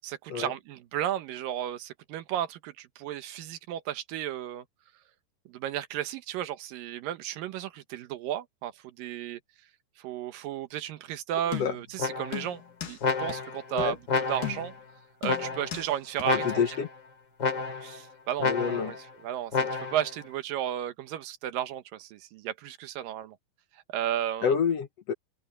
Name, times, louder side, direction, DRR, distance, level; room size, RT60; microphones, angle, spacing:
voice 1, 0.0-4.6 5.5-9.4 10.0-14.0 14.3-14.7 15.2-16.5 17.8-19.0 19.2-23.4 23.9-24.5, right 11 dB, 85° right, 2.8 m, -34 dB
sound 1, 11.5-12.0 12.3-13.0 13.3-13.4 13.8-14.0 14.4-14.9 15.2-15.9 16.2-16.3, left 11 dB, 85° left, 4.2 m, -37 dB
sound 2, 12.0-12.5 13.0-13.7 14.1-14.7 15.3-15.8 16.2-16.9 17.4-18.0 18.4-19.0 19.5-20.1, left 4 dB, 35° left, 3.9 m, -30 dB
voice 2, 16.4-16.9 18.4-18.9 24.4-25.1, left 7 dB, 60° left, 1.9 m, -27 dB
omnidirectional pair, 3.9 m